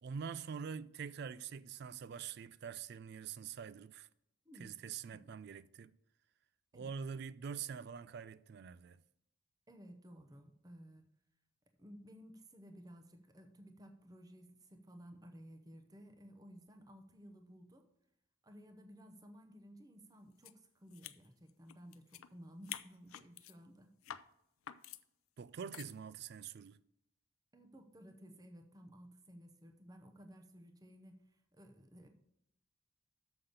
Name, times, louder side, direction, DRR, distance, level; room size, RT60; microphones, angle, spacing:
voice 1, 0.0-4.1 4.6-6.0 6.7-9.0 25.4-26.8, right 6 dB, 50° right, 0.3 m, -45 dB
voice 2, 4.4-4.8 5.0-5.3 6.7-6.9 9.7-11.1 11.8-17.9 18.4-24.2 27.5-32.1, equal, 15° right, 0.8 m, -56 dB
sound 1, 20.4-20.5 20.9-22.3 22.6-23.5 24.0-24.3 24.7-25.0 25.7-25.9, left 11 dB, 80° left, 0.5 m, -48 dB
7.0 x 5.7 x 6.6 m
head